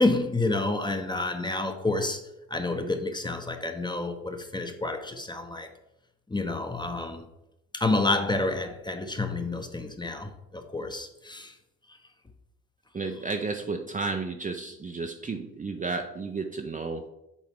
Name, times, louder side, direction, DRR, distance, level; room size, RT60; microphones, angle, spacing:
voice 1, 0.0-2.2 2.5-5.7 6.3-7.2 7.7-11.6, left 2 dB, 10° left, 6 dB, 0.8 m, -29 dB
voice 2, 12.9-17.1, right 4 dB, 20° right, 4 dB, 0.5 m, -32 dB
7.1 x 3.7 x 3.6 m, 0.88 s
supercardioid pair, 75°, 37 cm